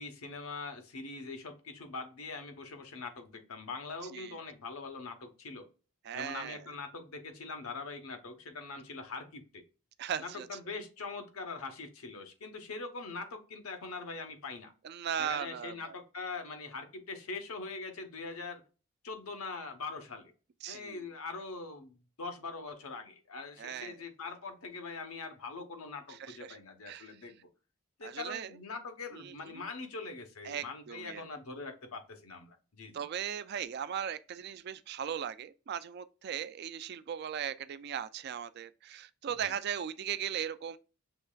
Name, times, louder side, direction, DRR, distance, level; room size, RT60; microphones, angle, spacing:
voice 1, 0.0-5.7 6.1-9.6 10.2-14.7 15.2-18.6 19.0-20.3 20.7-27.5 28.0-33.0 39.3-39.5, left 4 dB, 80° left, 0.9 m, -42 dB
voice 2, 6.0-6.6 10.0-10.5 14.8-16.0 20.6-21.0 23.6-24.0 26.1-26.6 26.9-27.2 28.0-28.5 29.1-29.6 30.4-31.3 32.9-40.8, right 9 dB, 50° right, 0.3 m, -38 dB
6.8 x 3.2 x 2.2 m
head